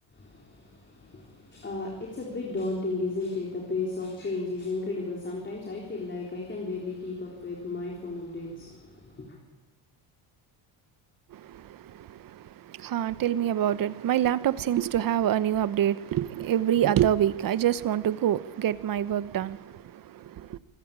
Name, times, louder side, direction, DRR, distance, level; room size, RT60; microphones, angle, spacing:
voice 1, 0.1-9.4, left 3 dB, 25° left, 3.9 m, -34 dB
voice 2, 11.3-20.6, right 11 dB, 45° right, 0.9 m, -26 dB
26.5 x 13.0 x 8.8 m
cardioid pair, 125°, 47 cm